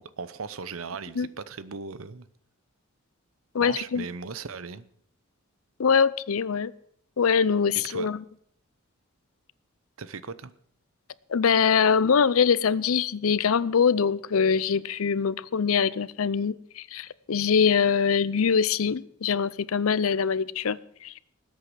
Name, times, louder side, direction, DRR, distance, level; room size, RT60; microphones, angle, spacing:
voice 1, 0.0-2.3 3.6-4.9 7.7-8.1 10.0-10.5, right 5 dB, 75° right, 0.8 m, -37 dB
voice 2, 3.5-4.0 5.8-6.7 7.2-8.2 11.3-20.8 21.0-21.1, left 6 dB, 85° left, 0.6 m, -23 dB
19.5 x 8.4 x 6.2 m
head